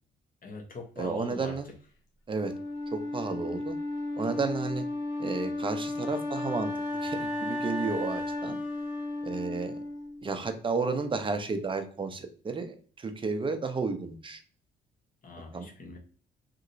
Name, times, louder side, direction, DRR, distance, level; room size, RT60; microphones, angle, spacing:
voice 1, 0.4-1.6 15.2-16.0, left 3 dB, 45° left, 2 dB, 0.9 m, -42 dB
voice 2, 1.0-1.7 2.3-2.5 2.9-3.8 4.2-4.8 5.2-6.7 7.0-8.6 9.2-9.7 10.2-14.4 15.5-15.7, right 4 dB, 25° right, 7 dB, 0.6 m, -32 dB
Wind instrument woodwind instrument, 2.4-10.4, left 2 dB, 85° left, 0.8 m, -34 dB
2.9 x 2.8 x 2.6 m, 0.42 s
cardioid pair, 90°, 20 cm